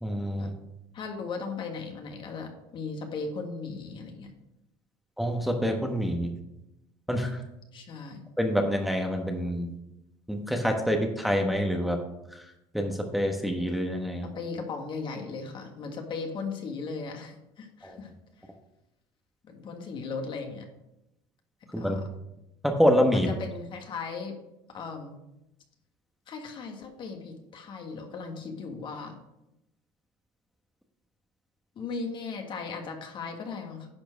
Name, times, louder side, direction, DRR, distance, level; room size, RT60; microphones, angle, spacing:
voice 1, 0.0-0.5 5.2-6.3 7.1-7.4 8.4-9.7 10.3-12.0 12.3-12.4 12.7-14.3 17.8-18.0 21.7-22.0 22.6-23.3, equal, ahead, 2 dB, 1.2 m, -26 dB
voice 2, 0.9-4.3 7.7-8.3 14.3-18.1 19.4-20.7 21.8-22.1 23.1-24.4 24.7-25.2 26.3-29.2 31.8-33.9, left 4 dB, 45° left, 4 dB, 1.8 m, -37 dB
10.5 x 4.5 x 6.2 m, 0.89 s
supercardioid pair, 100°, 11 cm